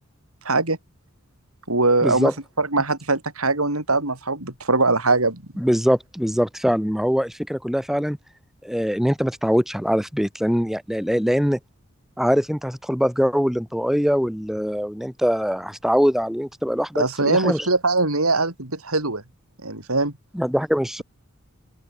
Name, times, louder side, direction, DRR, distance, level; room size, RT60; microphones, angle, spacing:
voice 1, 0.4-0.8 1.7-2.3 2.6-5.4 16.9-19.2 19.6-20.1, right 3 dB, 90° right, 6.7 m, -21 dB
voice 2, 2.0-2.3 5.6-8.2 8.6-11.6 12.2-17.7 20.3-21.0, equal, ahead, 5.8 m, -22 dB
open air
head